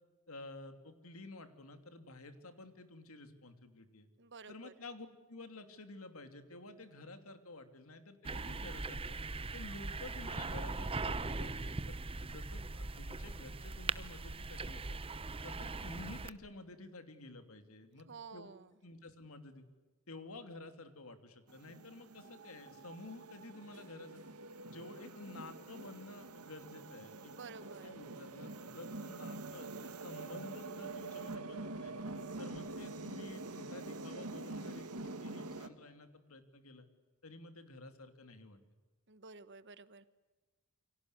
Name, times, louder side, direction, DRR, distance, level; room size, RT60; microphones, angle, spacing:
voice 1, 0.3-4.1 4.5-9.1 9.5-15.0 15.4-18.5 18.8-19.7 20.1-24.2 24.6-32.0 32.4-36.9 37.2-38.6, left 2 dB, 70° left, 8 dB, 3.0 m, -51 dB
voice 2, 4.2-4.7 18.1-18.7 27.3-27.9 39.1-40.1, right 4 dB, 55° right, 14 dB, 1.2 m, -51 dB
sound 1, 8.2-16.3, right 3 dB, 25° right, 0.8 m, -40 dB
sound 2, 21.5-35.7, right 2 dB, 85° right, 2.1 m, -46 dB
29.0 x 24.5 x 8.2 m, 1.3 s
head